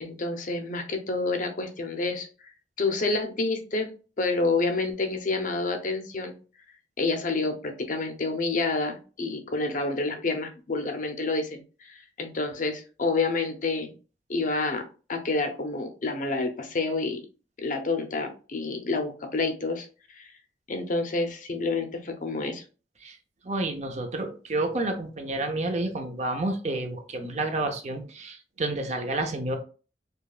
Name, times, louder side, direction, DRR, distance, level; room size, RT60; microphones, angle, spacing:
voice 1, 0.0-2.3 2.8-3.9 4.2-6.3 7.0-13.9 14.3-14.8 15.1-17.2 17.6-19.9 20.1-20.3 20.7-22.6, left 3 dB, 45° left, 6 dB, 0.6 m, -28 dB
voice 2, 23.5-29.6, right 2 dB, 40° right, 5 dB, 0.6 m, -30 dB
5.2 x 2.2 x 2.4 m, 0.36 s
head